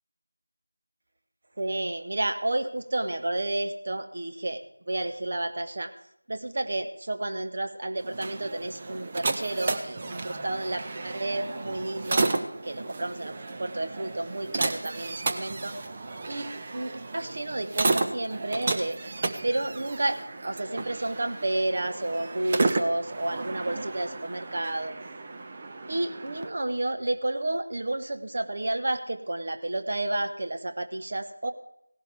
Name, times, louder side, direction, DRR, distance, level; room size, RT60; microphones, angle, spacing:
voice 1, 1.6-4.6 4.9-5.9 6.3-12.3 12.6-15.7 16.3-19.0 19.4-24.9 25.9-31.5, right 2 dB, 40° right, 7 dB, 1.1 m, -31 dB
sound 1, 8.0-26.5, right 3 dB, 20° right, 0.6 m, -33 dB
17.0 x 11.5 x 3.5 m, 0.78 s
figure-of-eight pair, 175°, 0 cm